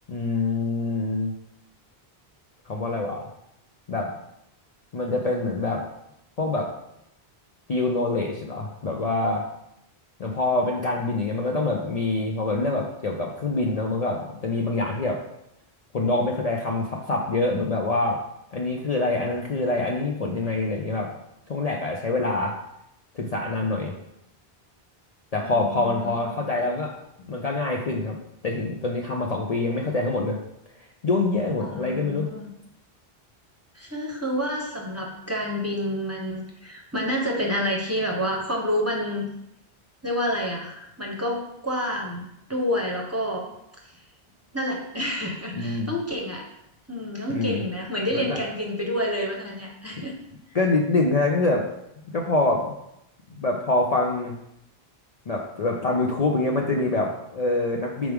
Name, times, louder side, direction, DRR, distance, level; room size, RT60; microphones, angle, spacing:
voice 1, 0.1-1.3 2.7-3.2 3.9-4.1 4.9-5.8 6.4-6.7 7.7-9.4 10.2-15.2 15.9-18.2 18.5-21.1 21.5-22.6 23.1-23.9 25.3-26.9 27.2-28.2 28.4-30.4 31.0-32.3 45.5-45.9 47.3-47.6 48.1-48.4 50.0-50.1 50.5-51.7 52.1-52.7 53.3-54.4 55.3-58.1, left 2 dB, 45° left, 0 dB, 0.6 m, -25 dB
voice 2, 25.4-26.5 31.6-32.5 33.7-39.3 40.0-42.2 42.5-43.4 43.9-44.0 44.5-46.5 46.9-50.1, equal, 15° right, -1 dB, 0.9 m, -29 dB
6.2 x 4.6 x 3.5 m, 0.81 s
omnidirectional pair, 1.0 m